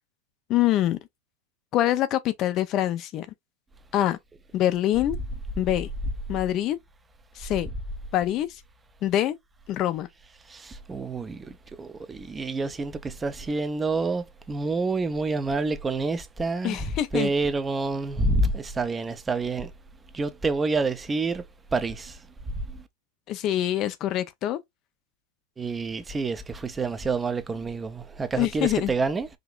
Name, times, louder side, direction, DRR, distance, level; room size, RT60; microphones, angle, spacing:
voice 1, 0.5-1.0 1.7-3.3 3.9-4.2 4.5-5.2 5.6-5.9 6.3-6.8 7.4-7.7 8.1-8.6 9.0-9.4 9.7-10.1 16.6-17.3 23.3-24.6 28.4-28.9, left 13 dB, 40° left, 0.5 m, -25 dB
voice 2, 10.5-19.7 20.1-21.4 21.7-22.2 22.7-22.8 25.6-29.3, right 3 dB, 15° right, 0.6 m, -28 dB
5.0 x 2.9 x 2.4 m
figure-of-eight pair, 90°, 0 cm